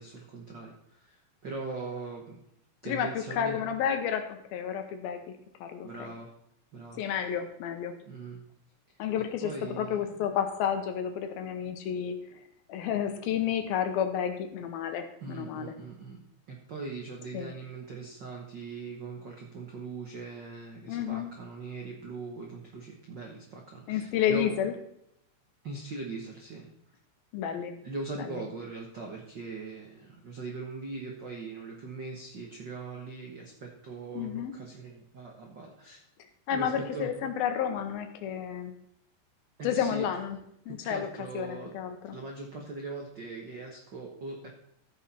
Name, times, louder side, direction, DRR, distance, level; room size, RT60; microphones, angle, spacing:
voice 1, 0.0-2.4 2.8-3.6 5.8-6.3 6.7-7.0 8.1-8.4 9.4-10.0 15.2-16.2 16.5-24.5 25.6-26.7 27.8-36.0 36.5-37.1 39.6-40.1 40.7-41.7 42.1-44.5, right 3 dB, 85° right, 0 dB, 1.0 m, -40 dB
voice 2, 2.8-5.2 5.6-6.1 7.0-7.9 9.0-12.2 12.7-15.7 17.3-17.5 20.9-21.3 23.9-24.7 27.3-27.8 28.2-28.4 34.1-34.6 36.5-38.7 39.6-40.4 40.7-41.1 41.3-42.2, left 8 dB, 85° left, 7 dB, 2.9 m, -31 dB
14.5 x 6.6 x 4.3 m, 0.76 s
omnidirectional pair, 4.3 m